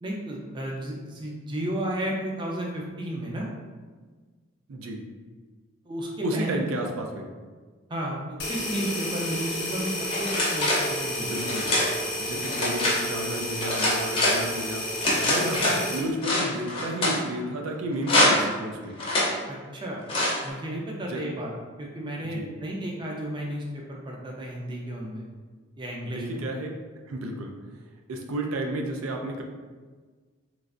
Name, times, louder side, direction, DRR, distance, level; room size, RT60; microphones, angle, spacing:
voice 1, 0.0-3.5 5.9-6.6 7.9-9.9 10.2-11.3 12.6-12.7 15.4-15.7 19.5-20.0 20.4-21.5 21.8-25.2 25.8-26.4, right 1 dB, 25° right, -2 dB, 0.4 m, -33 dB
voice 2, 4.7-5.0 6.2-7.3 11.2-11.7 12.2-14.9 15.2-19.0 21.1-21.2 22.3-22.5 26.0-26.8 27.1-27.6 28.1-29.4, right 1 dB, 85° right, 2 dB, 0.4 m, -32 dB
sound 1, 8.4-16.1, left 1 dB, 55° left, 0.9 m, -31 dB
sound 2, 10.1-10.9 11.4-11.9 12.4-13.0 13.6-14.4 15.0-15.8 16.2-17.2 18.0-18.5 19.0-19.3 20.1-20.4, left 1 dB, 25° left, 0.6 m, -24 dB
3.1 x 2.4 x 2.4 m, 1.4 s
head